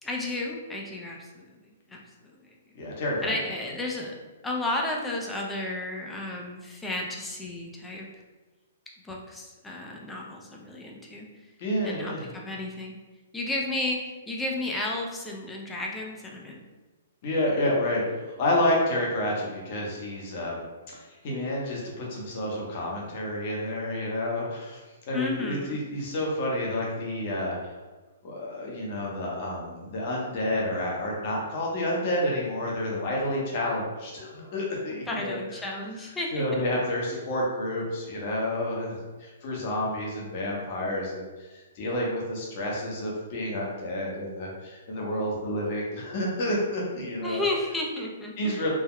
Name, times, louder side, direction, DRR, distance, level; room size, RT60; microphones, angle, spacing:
voice 1, 0.0-2.6 3.2-4.1 4.4-8.1 9.0-11.3 11.8-12.9 13.3-16.6 25.1-25.8 34.9-36.6 47.2-48.7, left 2 dB, 10° left, -1 dB, 0.4 m, -33 dB
voice 2, 2.7-3.3 11.6-12.3 17.2-20.7 21.2-24.8 25.1-27.6 28.2-35.4 36.3-41.5 41.7-47.4 48.4-48.7, left 1 dB, 50° left, -3 dB, 0.9 m, -29 dB
3.4 x 2.1 x 2.2 m, 1.3 s
hypercardioid pair, 135°, 0 cm